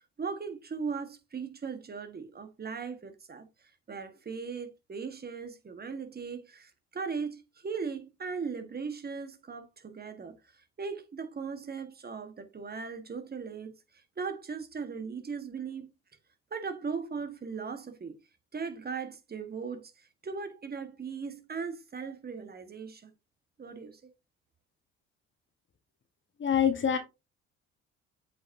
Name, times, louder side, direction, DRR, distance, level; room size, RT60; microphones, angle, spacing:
voice 1, 0.2-3.5 3.9-10.3 10.8-15.9 16.5-18.1 18.5-23.1 23.6-24.1, right 5 dB, 30° right, 1.5 m, -38 dB
voice 2, 26.4-27.0, left 8 dB, 40° left, 1.5 m, -25 dB
8.2 x 5.0 x 2.7 m
hypercardioid pair, 60°, 30 cm